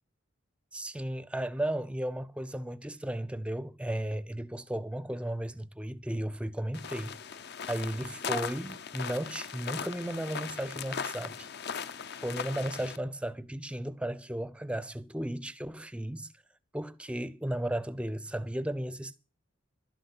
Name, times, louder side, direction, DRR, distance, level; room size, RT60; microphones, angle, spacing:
voice 1, 0.7-7.2 7.7-11.5 12.2-16.3 16.7-19.2, right 1 dB, 5° right, 0.5 m, -35 dB
sound 1, 6.7-13.0, left 6 dB, 50° left, 0.6 m, -38 dB
12.0 x 11.0 x 5.5 m
head